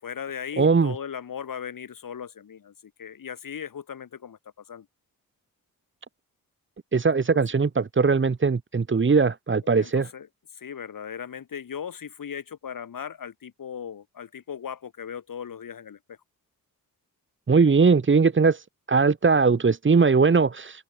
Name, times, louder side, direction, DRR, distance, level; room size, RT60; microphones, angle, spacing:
voice 1, 0.0-4.4 4.7-4.9 7.3-7.4 9.6-10.3 10.5-16.2, left 8 dB, 65° left, 6.2 m, -38 dB
voice 2, 0.6-0.9 6.9-10.1 17.5-20.8, right 4 dB, 35° right, 2.5 m, -20 dB
open air
cardioid pair, 110°, 35 cm